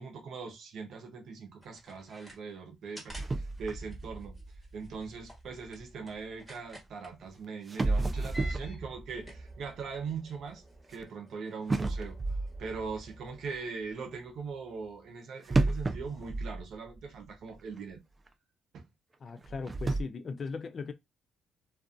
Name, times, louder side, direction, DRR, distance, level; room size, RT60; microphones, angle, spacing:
voice 1, 0.0-4.4 4.7-10.6 10.9-18.0 18.7-18.9, right 5 dB, 70° right, 0.6 m, -41 dB
sound 1, 1.6-2.4 2.9-3.3 3.6-3.7 3.9-7.1 8.0-8.8 9.1-13.7, right 1 dB, ahead, 1.2 m, -52 dB
sound 2, 3.1-6.2 7.2-7.3 7.7-11.0 11.7-13.6 15.5-17.3 17.5-17.6 18.3-18.4 19.4-20.0, right 2 dB, 25° right, 0.3 m, -33 dB
voice 2, 19.2-20.9, left 4 dB, 45° left, 0.4 m, -38 dB
2.4 x 2.3 x 2.5 m
cardioid pair, 90°, 0 cm